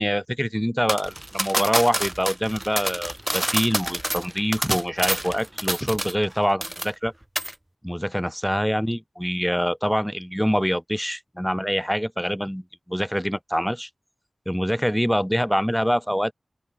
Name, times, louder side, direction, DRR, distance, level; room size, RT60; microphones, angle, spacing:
voice 1, 0.0-7.1 7.8-13.9 14.5-16.3, equal, ahead, 1.9 m, -25 dB
sound 1, 0.9-6.3 6.6-7.1 7.4-7.5, right 1 dB, 15° right, 0.7 m, -27 dB
open air
wide cardioid pair, 65°, 0 cm